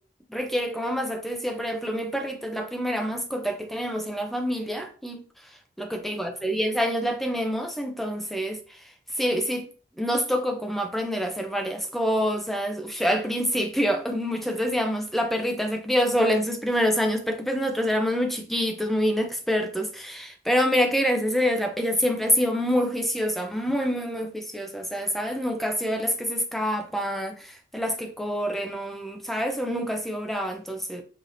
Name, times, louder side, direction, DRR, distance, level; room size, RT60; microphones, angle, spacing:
voice 1, 0.3-5.2 5.8-8.6 9.2-9.7 10.0-31.0, equal, ahead, 0.4 m, -26 dB
4.7 x 2.8 x 2.5 m
head